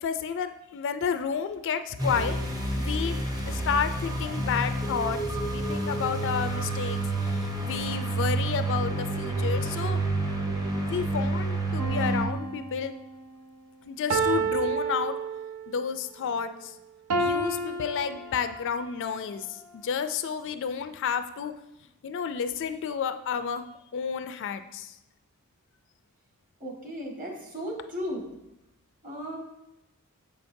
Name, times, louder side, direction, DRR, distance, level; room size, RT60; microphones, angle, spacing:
voice 1, 0.0-2.4 2.7-10.0 10.8-12.9 13.9-15.1 15.7-16.8 17.2-21.6 22.0-23.6 23.9-24.9, left 6 dB, 55° left, 9 dB, 0.4 m, -31 dB
sound 1, 2.0-12.2, right 2 dB, 20° right, 0.7 m, -29 dB
sound 2, 11.8-13.1 14.1-15.8 17.1-18.8 19.5-19.6, right 3 dB, 85° right, 0.6 m, -30 dB
voice 2, 26.6-28.2 29.0-29.4, equal, 40° right, -1 dB, 1.6 m, -35 dB
7.3 x 5.7 x 2.6 m, 0.90 s
head